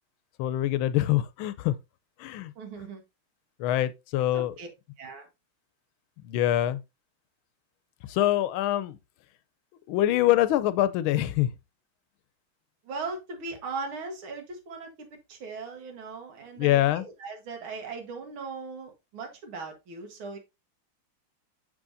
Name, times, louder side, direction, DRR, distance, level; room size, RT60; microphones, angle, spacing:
voice 1, 0.4-1.8 2.2-2.5 3.6-4.5 6.2-6.8 8.1-9.0 9.9-11.5 16.6-17.1, left 13 dB, 85° left, 1.4 m, -24 dB
voice 2, 2.6-3.0 4.3-4.7 5.0-5.3 12.9-20.4, right 4 dB, 80° right, 2.2 m, -39 dB
6.9 x 6.2 x 2.6 m
omnidirectional pair, 2.2 m